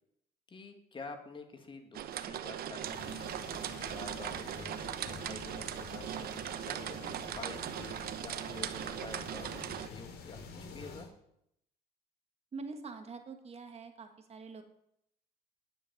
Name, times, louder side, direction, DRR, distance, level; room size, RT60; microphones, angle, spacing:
voice 1, 0.5-3.5 3.7-9.5 9.9-11.1, left 3 dB, 30° left, 6 dB, 2.1 m, -48 dB
sound 1, 1.9-9.9, right 11 dB, 65° right, 1.0 m, -39 dB
sound 2, 2.8-11.1, left 4 dB, 70° left, 2.9 m, -48 dB
voice 2, 12.5-14.6, right 4 dB, 40° right, 6 dB, 1.9 m, -45 dB
10.0 x 8.5 x 8.8 m, 0.76 s
cardioid pair, 110°, 17 cm